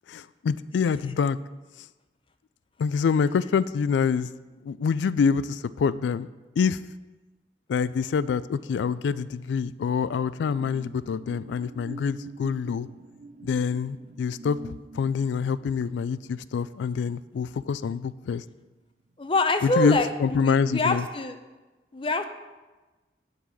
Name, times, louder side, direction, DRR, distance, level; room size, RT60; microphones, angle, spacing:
voice 1, 0.1-1.4 2.8-4.3 4.6-6.3 6.6-6.8 7.7-12.9 13.4-18.4 19.6-21.1, left 6 dB, 90° left, 17 dB, 0.3 m, -26 dB
sound 1, 9.6-18.6 18.9-19.2, right 3 dB, 40° right, 0.4 m, -47 dB
voice 2, 19.2-21.4 21.9-22.2, left 2 dB, 30° left, 8 dB, 0.5 m, -25 dB
10.0 x 4.0 x 6.1 m, 1.2 s
head